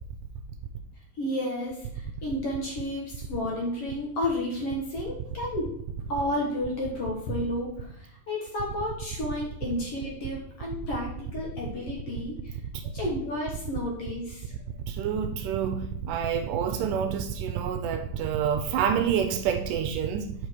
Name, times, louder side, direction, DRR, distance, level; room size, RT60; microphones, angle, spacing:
voice 1, 1.2-5.7 6.1-12.6 12.9-14.5, left 1 dB, 55° left, -2 dB, 1.9 m, -32 dB
voice 2, 14.9-20.3, right 8 dB, 80° right, 7 dB, 2.1 m, -28 dB
7.8 x 5.0 x 4.5 m, 0.73 s
omnidirectional pair, 4.0 m